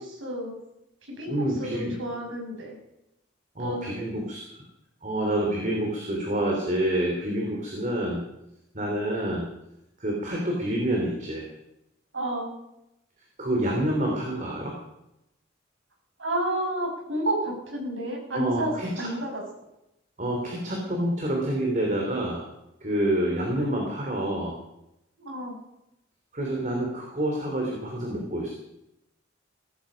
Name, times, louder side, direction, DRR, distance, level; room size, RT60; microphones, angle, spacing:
voice 1, 0.2-0.6 1.2-2.7 3.6-4.0 12.1-12.5 16.2-18.7 19.0-19.4 25.2-25.6, right 1 dB, 75° right, 0 dB, 6.3 m, -30 dB
voice 2, 1.3-2.0 3.5-4.6 5.0-8.2 8.7-9.5 10.0-11.4 13.4-14.7 18.3-19.1 20.2-22.4 22.8-24.6 26.3-28.5, right 1 dB, 40° right, 0 dB, 3.1 m, -27 dB
17.0 x 14.5 x 5.2 m, 0.88 s
head